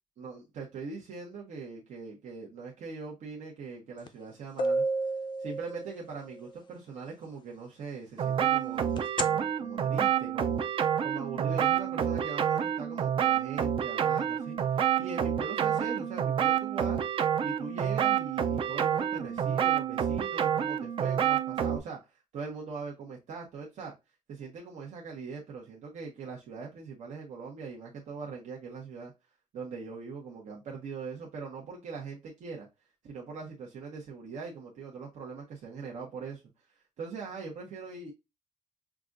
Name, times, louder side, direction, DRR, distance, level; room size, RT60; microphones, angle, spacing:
voice 1, 0.2-4.8 5.4-9.0 9.2-10.6 11.0-17.0 17.4-23.9 24.3-29.1 29.5-32.7 33.0-36.4 37.0-38.1, right 4 dB, 85° right, 1.1 m, -41 dB
sound 1, 4.1-4.2 4.6-6.3 9.0-9.2, right 1 dB, 40° left, 0.4 m, -30 dB
sound 2, 8.2-21.8, right 9 dB, 45° right, 0.4 m, -28 dB
5.9 x 2.4 x 2.5 m
wide cardioid pair, 170°, 12 cm